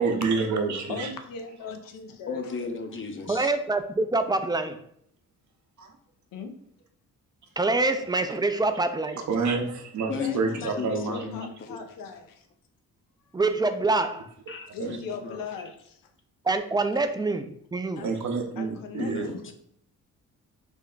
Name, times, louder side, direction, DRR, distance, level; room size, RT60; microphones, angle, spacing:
voice 1, 0.0-1.1 5.8-6.0 9.1-11.3 14.8-15.0 18.0-19.3, right 4 dB, 60° right, 5 dB, 0.7 m, -28 dB
voice 2, 0.9-2.4 6.3-6.5 10.2-12.5 14.7-15.7 18.0-18.2 18.6-19.1 19.4-19.5, left 5 dB, 80° left, 6 dB, 0.6 m, -38 dB
voice 3, 2.3-3.5 10.1-11.8 14.5-15.7 19.0-19.5, left 5 dB, 35° left, 6 dB, 0.7 m, -35 dB
voice 4, 3.3-4.8 7.6-9.2 13.3-14.3 16.4-18.0, right 3 dB, 15° right, 8 dB, 0.3 m, -25 dB
3.4 x 2.1 x 3.8 m, 0.67 s
cardioid pair, 60°, 34 cm